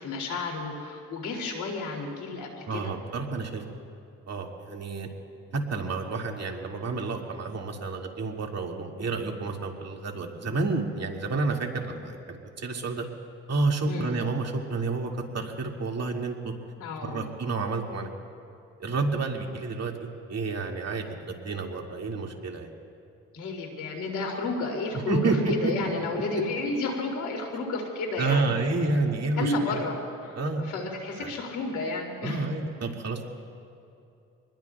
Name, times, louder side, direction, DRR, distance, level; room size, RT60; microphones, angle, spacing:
voice 1, 0.0-2.9 13.9-14.1 16.8-17.2 23.3-28.5 29.3-32.5, left 3 dB, 85° left, 1 dB, 2.9 m, -32 dB
voice 2, 2.7-3.6 4.3-5.1 5.5-13.1 13.5-16.5 17.0-18.1 18.8-22.7 24.9-25.7 28.2-29.8 30.4-30.6 31.2-31.3 32.2-33.2, right 3 dB, 60° right, 1 dB, 2.4 m, -30 dB
26.5 x 20.5 x 2.4 m, 2.6 s
supercardioid pair, 50°, 29 cm